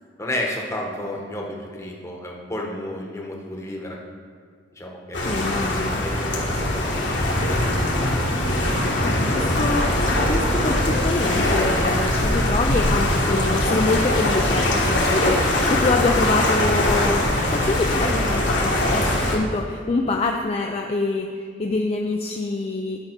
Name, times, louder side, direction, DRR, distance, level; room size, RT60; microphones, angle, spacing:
voice 1, 0.2-4.0 4.8-5.4 6.0-7.0, left 1 dB, 15° left, -1 dB, 1.0 m, -31 dB
sound 1, 5.1-19.4, left 1 dB, 70° left, 1.5 m, -21 dB
voice 2, 5.2-6.0 9.0-23.0, left 3 dB, 35° left, 2 dB, 0.4 m, -25 dB
10.5 x 5.4 x 4.4 m, 2.1 s
head